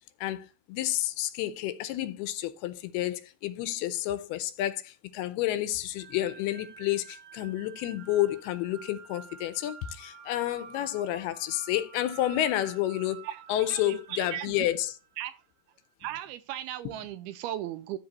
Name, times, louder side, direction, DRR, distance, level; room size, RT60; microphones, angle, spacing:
voice 1, 0.2-15.0, left 13 dB, 80° left, 2.5 m, -30 dB
sound 1, 6.0-15.2, right 6 dB, 60° right, 3.4 m, -49 dB
voice 2, 13.2-14.7 15.2-15.3 16.0-18.0, right 12 dB, 80° right, 2.3 m, -37 dB
12.5 x 4.2 x 4.0 m
omnidirectional pair, 4.7 m